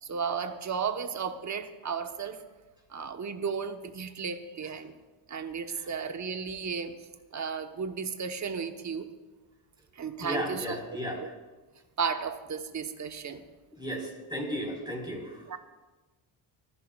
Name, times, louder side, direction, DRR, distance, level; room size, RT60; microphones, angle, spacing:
voice 1, 0.0-2.4 2.9-5.0 5.3-7.0 7.3-9.1 9.9-10.8 11.2-11.3 12.0-13.4 15.5-15.6, right 6 dB, 35° right, 7 dB, 1.1 m, -34 dB
voice 2, 10.2-11.2 13.8-15.4, equal, 10° right, -1 dB, 4.4 m, -34 dB
25.5 x 11.5 x 2.4 m, 1.2 s
cardioid pair, 90°, 46 cm